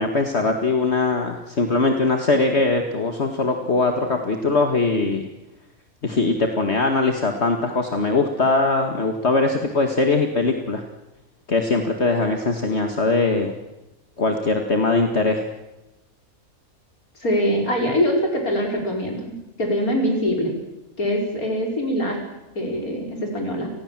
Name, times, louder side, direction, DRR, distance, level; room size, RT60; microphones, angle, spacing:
voice 1, 0.0-5.3 6.0-10.8 11.5-13.5 14.2-15.4, left 3 dB, 50° left, 4 dB, 2.2 m, -21 dB
voice 2, 17.2-20.5 21.0-22.2 22.6-23.7, equal, 85° left, 1 dB, 6.1 m, -23 dB
29.0 x 20.5 x 7.6 m, 0.97 s
omnidirectional pair, 1.5 m